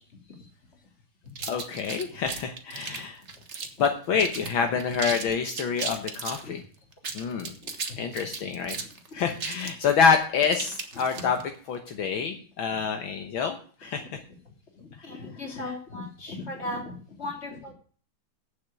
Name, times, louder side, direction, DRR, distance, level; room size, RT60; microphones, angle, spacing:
sound 1, 1.4-3.9 4.2-4.5 4.8-6.4 6.9-11.5, right 4 dB, 35° right, 1.5 m, -36 dB
voice 1, 1.5-3.2 3.8-6.6 7.1-7.5 8.0-8.8 9.1-14.2 15.5-15.8, left 6 dB, 70° left, 6 dB, 1.9 m, -27 dB
voice 2, 7.6-8.0 14.0-14.1 14.8-17.7, left 2 dB, 30° left, 1 dB, 3.2 m, -37 dB
8.2 x 7.5 x 8.7 m, 0.43 s
omnidirectional pair, 2.3 m